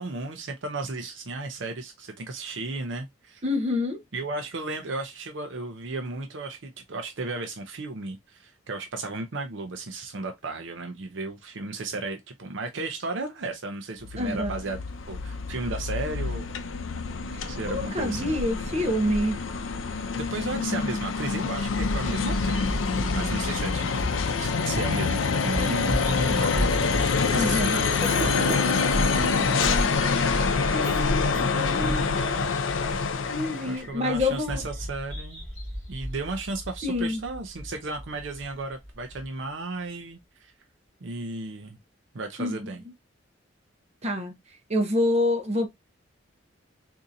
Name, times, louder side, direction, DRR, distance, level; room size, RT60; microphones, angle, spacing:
voice 1, 0.0-3.4 4.1-14.8 15.1-16.5 17.5-18.4 20.1-29.5 31.8-32.5 33.6-35.4 35.9-40.5 41.0-41.8 42.1-42.8, right 3 dB, 65° right, 0.6 m, -34 dB
voice 2, 3.4-4.0 14.2-14.5 17.7-19.4 27.3-27.8 30.7-31.2 31.5-32.0 33.3-34.6 36.8-37.2 42.4-42.7 44.0-44.3 44.7-45.7, left 1 dB, 35° right, 0.9 m, -27 dB
sound 1, 14.0-33.8, left 4 dB, 75° left, 0.5 m, -26 dB
Bird vocalization bird call bird song, 21.2-39.3, equal, 5° left, 2.2 m, -34 dB
Cough, 28.0-28.9 29.6-29.8 30.8-31.1 31.3-31.6, right 1 dB, 25° left, 1.7 m, -34 dB
3.7 x 2.7 x 2.6 m
head